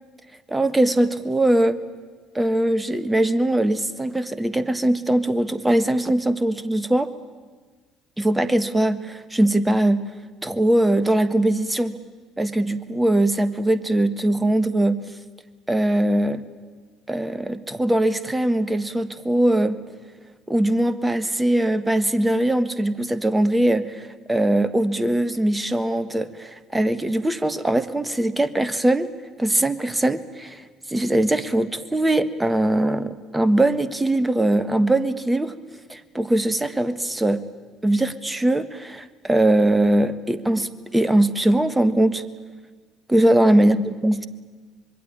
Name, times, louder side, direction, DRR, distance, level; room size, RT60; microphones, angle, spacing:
voice 1, 0.5-1.8 2.3-7.1 8.2-10.0 10.4-11.9 12.4-15.0 15.7-16.4 17.1-19.8 20.5-29.1 29.4-30.6 30.9-35.5 35.9-37.4 37.8-42.2 43.1-44.3, right 1 dB, 10° right, 14 dB, 1.5 m, -21 dB
25.5 x 21.5 x 8.9 m, 1.4 s
figure-of-eight pair, 55°, 0 cm